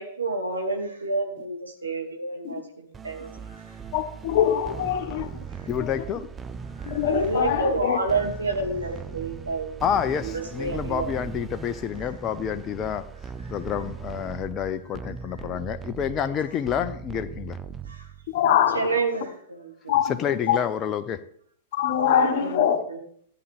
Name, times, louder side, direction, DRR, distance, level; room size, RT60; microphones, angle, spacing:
voice 1, 0.0-3.6 5.5-5.7 6.8-9.8 10.2-11.1 17.9-18.1 18.7-19.9 22.3-23.0, right 3 dB, 85° right, 2.2 m, -29 dB
sound 1, 2.9-18.4, right 6 dB, 15° right, 0.5 m, -39 dB
voice 2, 3.9-5.3 5.8-5.9 6.8-8.0 18.3-19.0 19.9-20.6 21.7-22.8, left 9 dB, 50° left, 1.4 m, -23 dB
voice 3, 5.7-6.2 9.8-13.1 13.5-17.6 20.2-21.2, left 8 dB, 30° left, 0.6 m, -28 dB
13.5 x 9.0 x 3.4 m
figure-of-eight pair, 100°, 0 cm